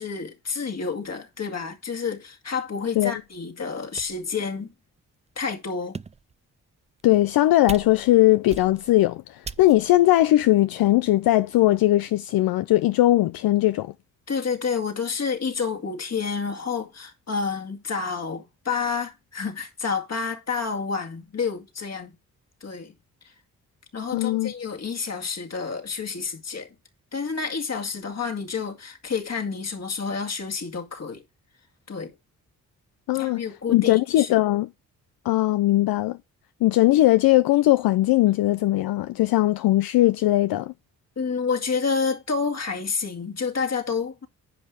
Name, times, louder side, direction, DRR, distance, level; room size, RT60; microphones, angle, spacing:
voice 1, 0.0-4.7 5.4-6.0 14.3-22.1 22.6-22.9 23.2-23.3 23.9-26.7 27.1-31.2 31.9-32.1 33.1-34.4 41.2-44.3, left 5 dB, 45° left, 2.1 m, -29 dB
sound 1, 3.2-3.3 4.0-4.3 5.0-5.1 5.7-6.3 7.0-7.4 7.7-8.2 8.5-9.0 9.4-10.0, right 5 dB, 20° right, 0.4 m, -39 dB
voice 2, 7.0-13.9 24.1-24.5 33.1-33.4 33.7-34.7 35.3-36.2 36.6-40.7, left 16 dB, 75° left, 0.5 m, -19 dB
10.0 x 5.4 x 4.9 m
supercardioid pair, 55°, 36 cm